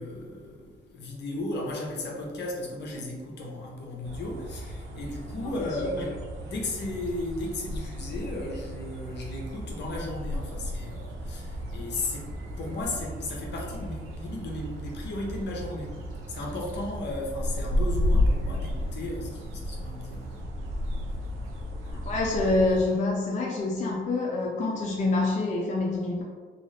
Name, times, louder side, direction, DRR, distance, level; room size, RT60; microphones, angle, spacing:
voice 1, 0.0-16.0 16.3-20.3, left 2 dB, 60° left, -1 dB, 0.8 m, -35 dB
sound 1, 4.0-22.8, left 1 dB, 85° right, 0.5 m, -33 dB
voice 2, 5.4-6.1 21.9-26.2, left 2 dB, 35° left, -3 dB, 0.4 m, -27 dB
2.5 x 2.4 x 3.2 m, 1.5 s
cardioid pair, 90°, 20 cm